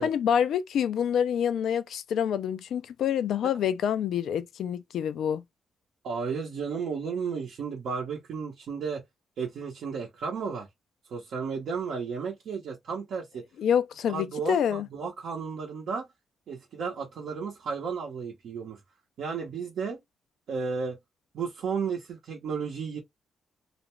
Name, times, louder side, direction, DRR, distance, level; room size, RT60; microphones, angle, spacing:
voice 1, 0.0-5.4 13.6-14.9, left 8 dB, 80° left, 0.3 m, -27 dB
voice 2, 6.0-9.0 9.4-10.7 11.1-13.4 14.1-16.1 16.5-18.8 19.2-20.0 20.5-21.0 21.3-23.0, right 5 dB, 75° right, 0.7 m, -33 dB
2.5 x 2.1 x 3.0 m
cardioid pair, 85°, 0 cm